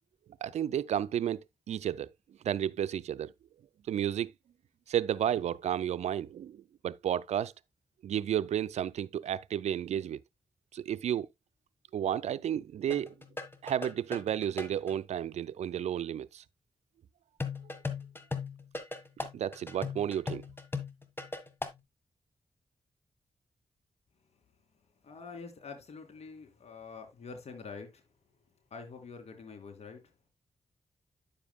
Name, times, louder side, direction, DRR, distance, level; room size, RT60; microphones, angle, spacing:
voice 1, 0.4-2.1 2.4-3.3 3.9-4.3 4.9-7.5 8.0-10.2 10.7-11.3 11.9-13.1 13.6-16.4 19.3-20.4, right 10 dB, 85° right, 0.4 m, -32 dB
sound 1, 12.9-14.9 17.4-21.8, left 3 dB, 20° left, 1.7 m, -37 dB
voice 2, 25.0-28.0 28.7-30.1, left 4 dB, 70° left, 2.5 m, -46 dB
10.0 x 7.2 x 2.3 m
cardioid pair, 55°, 11 cm